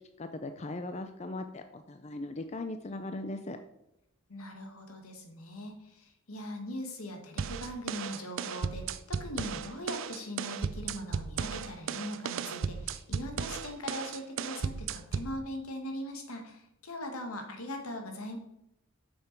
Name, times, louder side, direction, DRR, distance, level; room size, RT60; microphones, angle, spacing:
voice 1, 0.2-3.6, left 2 dB, 30° left, 8 dB, 0.4 m, -39 dB
voice 2, 4.3-18.4, left 1 dB, 80° left, 4 dB, 1.6 m, -40 dB
sound 1, 7.4-15.4, right 6 dB, 60° right, 0.4 m, -35 dB
6.8 x 6.6 x 4.5 m, 0.84 s
head